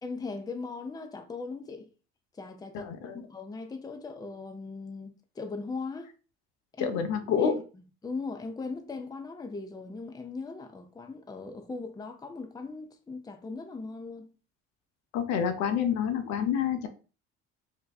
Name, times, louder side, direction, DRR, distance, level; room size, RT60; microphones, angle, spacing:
voice 1, 0.0-1.9 2.3-6.1 6.7-6.9 7.4-14.3, left 4 dB, 15° left, 0.6 m, -39 dB
voice 2, 2.7-3.2 6.8-7.6 15.1-16.9, left 7 dB, 65° left, 0.7 m, -28 dB
2.7 x 2.2 x 3.9 m
hypercardioid pair, 70°, 30 cm